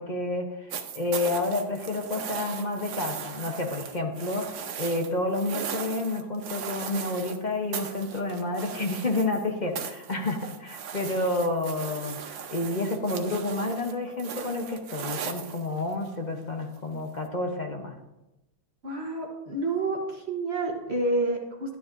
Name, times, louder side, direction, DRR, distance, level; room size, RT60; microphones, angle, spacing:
voice 1, 0.0-12.2 12.5-17.9, left 2 dB, 35° left, 2 dB, 0.8 m, -30 dB
sound 1, 0.7-7.4 7.7-9.5 9.8-16.1 17.3-17.4, right 7 dB, 75° right, 1.5 m, -38 dB
voice 2, 18.8-21.8, right 2 dB, 40° right, 0 dB, 1.1 m, -29 dB
11.5 x 9.9 x 2.6 m, 0.96 s
omnidirectional pair, 2.0 m